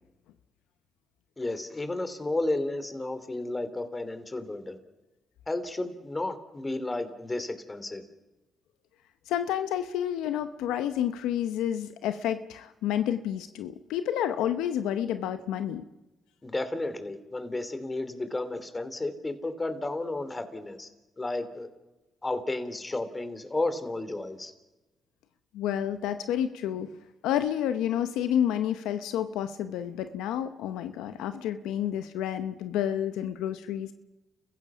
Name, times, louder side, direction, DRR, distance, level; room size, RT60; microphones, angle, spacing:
voice 1, 1.4-4.8 5.5-8.0 16.4-20.9 21.2-21.7 22.2-24.5, left 2 dB, 25° left, 10 dB, 3.0 m, -32 dB
voice 2, 9.3-15.8 25.5-26.9 27.2-33.9, left 10 dB, 90° left, 10 dB, 0.7 m, -30 dB
30.0 x 15.5 x 6.1 m, 1.1 s
supercardioid pair, 55°, 0 cm